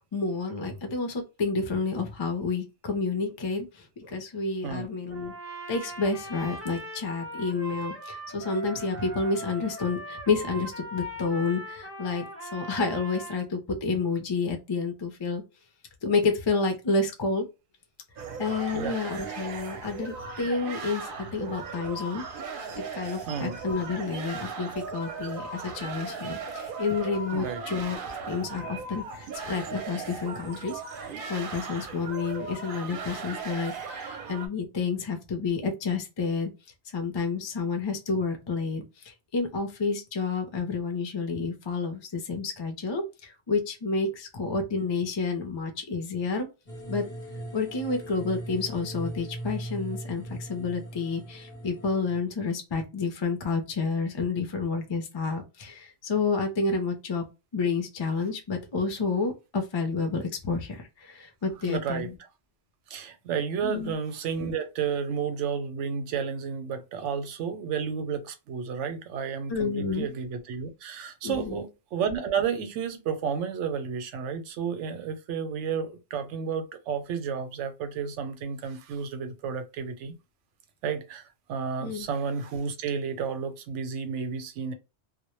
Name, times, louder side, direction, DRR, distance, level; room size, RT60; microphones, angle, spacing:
voice 1, 0.1-5.3 5.7-15.4 16.0-17.4 18.4-22.2 22.8-28.0 28.3-30.8 31.3-36.5 36.9-46.5 46.9-47.1 47.5-57.3 57.5-62.2 63.6-63.9 69.5-70.1 71.2-71.6 81.8-82.1, left 4 dB, 45° left, 0.3 m, -30 dB
Trumpet, 5.1-13.4, right 1 dB, 15° right, 0.6 m, -40 dB
sound 1, 18.2-34.5, right 4 dB, 60° right, 0.6 m, -38 dB
voice 2, 23.3-23.6 27.3-27.6 61.7-62.1 62.9-80.2 80.8-84.7, right 6 dB, 90° right, 0.9 m, -32 dB
sound 2, 46.7-52.2, right 1 dB, 15° left, 0.8 m, -39 dB
2.1 x 2.0 x 2.9 m
omnidirectional pair, 1.2 m